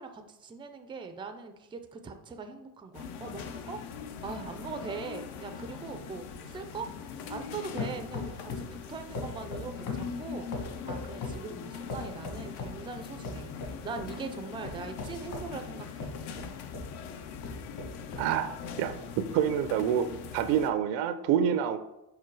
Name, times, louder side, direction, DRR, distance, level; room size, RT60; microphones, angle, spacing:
voice 1, 0.0-3.8 4.2-6.2 6.5-16.1, right 4 dB, 10° right, 7 dB, 0.4 m, -41 dB
sound 1, 2.9-20.7, left 7 dB, 65° left, 0.8 m, -42 dB
sound 2, 4.2-7.5 7.8-8.8 9.1-11.5 11.9-12.8 13.2-14.1 14.6-16.9 17.4-18.3 18.9-19.0, left 3 dB, 45° left, 1.6 m, -40 dB
voice 2, 18.2-20.1 20.3-21.8, right 9 dB, 85° right, 11 dB, 0.6 m, -27 dB
5.3 x 4.8 x 4.6 m, 0.93 s
cardioid pair, 140°, 43 cm